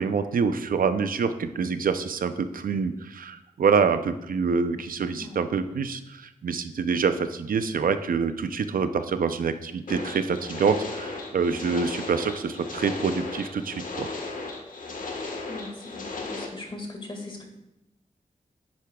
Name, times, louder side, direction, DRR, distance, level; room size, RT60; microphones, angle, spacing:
voice 1, 0.0-14.1, right 5 dB, 80° right, 10 dB, 0.6 m, -26 dB
voice 2, 5.2-5.8 15.5-17.4, left 2 dB, 35° left, 2 dB, 2.0 m, -40 dB
sound 1, 9.9-16.5, left 3 dB, 70° left, 1.4 m, -36 dB
10.5 x 8.5 x 2.3 m, 0.90 s
wide cardioid pair, 95°, 14 cm